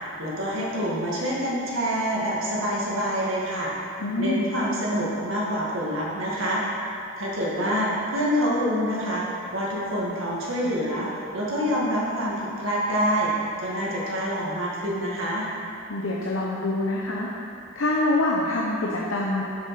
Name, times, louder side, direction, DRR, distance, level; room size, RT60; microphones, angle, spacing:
voice 1, 0.2-3.7 4.2-6.6 7.2-13.3 13.6-15.5, equal, 75° right, -5 dB, 1.8 m, -26 dB
voice 2, 4.0-4.4 15.9-17.3 17.8-19.4, left 2 dB, 70° left, -3 dB, 0.8 m, -25 dB
7.3 x 6.5 x 5.8 m, 2.8 s
head